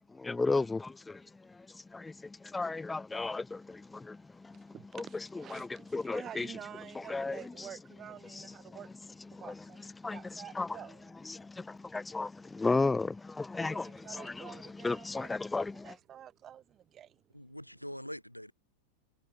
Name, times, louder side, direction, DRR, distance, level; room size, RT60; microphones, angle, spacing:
voice 1, 0.1-5.0 5.3-6.5 6.9-7.7 8.2-8.5 9.3-9.6 10.0-10.8 11.2-15.9, left 3 dB, 10° left, 1.0 m, -35 dB
voice 2, 4.7-8.9 9.3-11.0 13.6-15.4 15.7-17.6, right 10 dB, 25° right, 4.1 m, -49 dB
voice 3, 17.3-18.5, equal, 90° left, 0.8 m, -43 dB
figure-of-eight pair, 90°, 0 cm